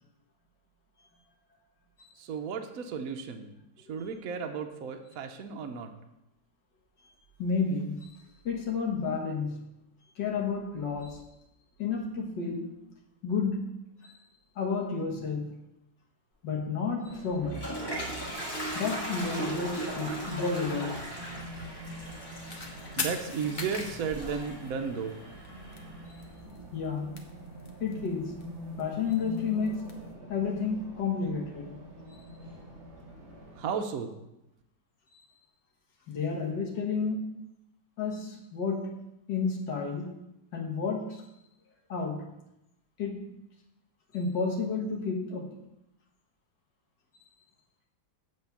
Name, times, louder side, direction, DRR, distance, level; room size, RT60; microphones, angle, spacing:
voice 1, 2.2-5.9 23.0-25.2 33.5-34.1, right 6 dB, 60° right, 5 dB, 1.0 m, -34 dB
voice 2, 7.0-8.1 8.5-9.6 10.2-11.2 11.8-12.7 13.2-13.7 14.0-14.1 14.6-15.5 16.4-17.7 18.7-21.0 26.7-27.1 27.8-28.4 28.8-29.8 30.3-31.8 32.1-32.2 36.1-37.3 38.0-39.0 39.3-40.2 40.5-41.2 41.9-42.3 43.0-43.3 44.1-45.5, left 5 dB, 70° left, 0 dB, 2.0 m, -31 dB
Race car auto racing, 17.0-33.6, equal, 45° right, 2.4 m, -45 dB
Toilet flush, 17.2-26.0, right 1 dB, 15° left, 1.7 m, -38 dB
sound 1, 22.5-22.7 23.0-25.1 25.4-25.5 25.7-25.8 26.1-26.6 26.8-28.1 28.4-29.9, left 3 dB, 40° left, 0.8 m, -38 dB
8.2 x 4.2 x 7.0 m, 0.88 s
omnidirectional pair, 2.0 m